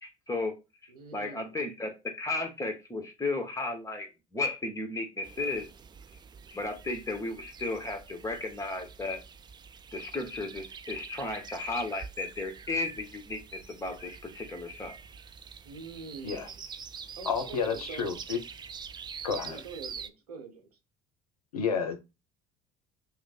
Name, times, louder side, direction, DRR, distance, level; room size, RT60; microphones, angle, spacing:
voice 1, 0.0-0.6 0.8-5.7 6.5-9.2 9.9-15.0 16.3-16.4, left 2 dB, 15° left, 1.2 m, -34 dB
voice 2, 0.9-1.6 15.6-16.6 17.2-18.1 19.4-20.7, right 4 dB, 85° right, 0.9 m, -45 dB
sound 1, 5.2-20.1, right 6 dB, 25° right, 0.3 m, -46 dB
voice 3, 17.3-18.4 19.2-19.6 21.5-22.0, left 6 dB, 85° left, 0.6 m, -30 dB
3.0 x 2.1 x 4.1 m
hypercardioid pair, 60°, 19 cm